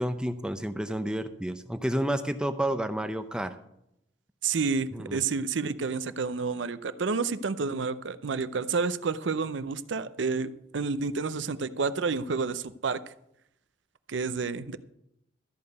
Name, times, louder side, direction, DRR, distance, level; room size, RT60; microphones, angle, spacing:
voice 1, 0.0-3.6 4.9-5.2, right 1 dB, 5° right, 9 dB, 0.5 m, -30 dB
voice 2, 4.4-13.0 14.1-14.8, right 4 dB, 75° right, 14 dB, 0.6 m, -30 dB
13.5 x 5.4 x 7.9 m, 0.79 s
head